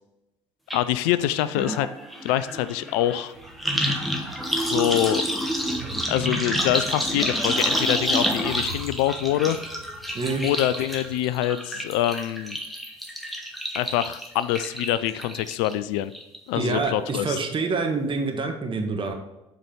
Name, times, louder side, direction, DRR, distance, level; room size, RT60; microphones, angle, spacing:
voice 1, 0.7-1.9 2.2-3.3 4.6-5.2 6.1-9.6 10.4-12.6 13.7-16.1 16.5-17.4, left 13 dB, 65° left, 15 dB, 0.4 m, -25 dB
sound 1, 0.7-0.8 1.1-15.7 16.1-16.6 16.9-17.0, equal, ahead, 1.3 m, -29 dB
Train, 3.3-11.2, right 2 dB, 90° right, 1.1 m, -45 dB
voice 2, 16.5-19.1, right 4 dB, 30° right, 4 dB, 1.4 m, -26 dB
7.5 x 4.6 x 5.3 m, 0.94 s
figure-of-eight pair, 60°, 16 cm